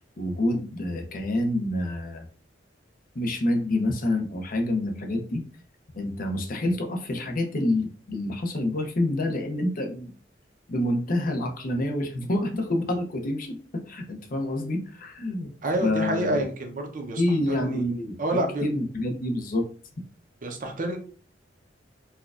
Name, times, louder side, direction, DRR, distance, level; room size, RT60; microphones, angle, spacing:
voice 1, 0.2-2.3 3.1-5.4 5.9-10.1 10.7-15.5 15.8-16.4 17.2-19.7, left 1 dB, 50° left, 4 dB, 0.6 m, -27 dB
voice 2, 15.6-17.2 17.5-17.8 18.2-18.7 20.4-21.0, right 1 dB, 45° right, 3 dB, 0.6 m, -28 dB
4.3 x 2.3 x 2.4 m, 0.41 s
head